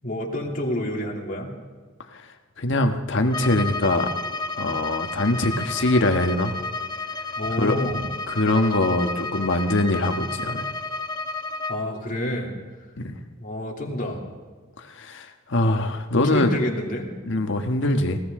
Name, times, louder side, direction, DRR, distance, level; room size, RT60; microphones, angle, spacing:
voice 1, 0.0-1.5 7.4-8.0 11.7-12.5 13.4-14.2 16.1-17.1, left 1 dB, 45° left, -1 dB, 2.9 m, -28 dB
voice 2, 2.6-4.1 4.6-6.6 7.6-10.7 13.0-13.2 14.9-16.6 17.3-18.2, left 2 dB, 65° left, 6 dB, 1.4 m, -23 dB
Bowed string instrument, 3.3-11.9, left 2 dB, 20° left, 0.9 m, -31 dB
20.5 x 18.5 x 3.8 m, 1.5 s
head